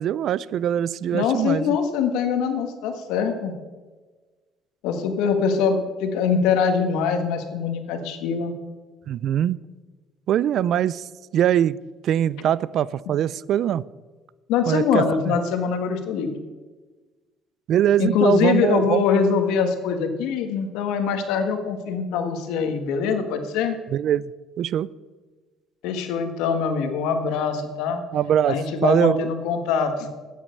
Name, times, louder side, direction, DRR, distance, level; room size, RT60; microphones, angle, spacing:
voice 1, 0.0-1.8 9.1-9.6 10.3-11.1 11.3-11.8 12.0-13.8 14.7-15.4 17.7-19.1 23.9-24.3 24.6-24.9 28.1-28.6 28.8-29.3, right 10 dB, 60° right, 21 dB, 0.4 m, -22 dB
voice 2, 1.1-3.5 4.8-8.5 14.5-16.3 18.0-23.8 25.8-28.0 28.5-30.1, left 6 dB, 90° left, 7 dB, 1.6 m, -23 dB
12.5 x 9.2 x 6.6 m, 1.3 s
cardioid pair, 115°, 0 cm